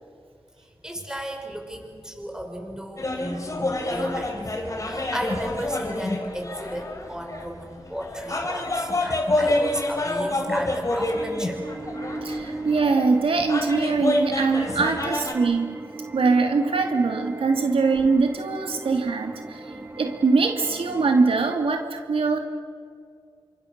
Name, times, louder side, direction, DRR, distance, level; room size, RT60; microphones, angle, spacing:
voice 1, 0.8-4.3 4.8-11.6, equal, 5° right, 3 dB, 5.4 m, -34 dB
sound 1, 3.0-15.3, left 1 dB, 35° left, 4.2 m, -27 dB
sound 2, 11.1-21.5, right 2 dB, 25° right, 2.6 m, -37 dB
voice 2, 12.2-15.8 16.1-19.6 20.0-22.4, right 4 dB, 80° right, 4 dB, 2.5 m, -22 dB
28.0 x 26.0 x 6.7 m, 2.2 s
wide cardioid pair, 75°, 9 cm